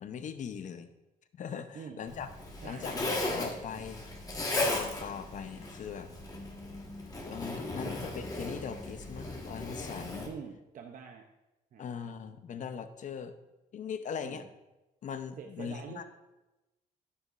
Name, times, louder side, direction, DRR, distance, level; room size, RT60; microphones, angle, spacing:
voice 1, 0.0-0.9 1.4-2.3 2.6-4.1 4.5-6.1 7.2-10.3 11.8-13.4 13.7-14.5 15.0-16.0, left 7 dB, 55° left, 10 dB, 0.7 m, -40 dB
Zipper (clothing), 2.1-10.3, left 2 dB, 25° left, 1.6 m, -36 dB
voice 2, 10.2-11.2 11.7-11.8 14.2-14.5 15.4-16.0, right 6 dB, 55° right, 3 dB, 0.7 m, -45 dB
11.0 x 9.7 x 2.6 m, 1.0 s
cardioid pair, 135°, 16 cm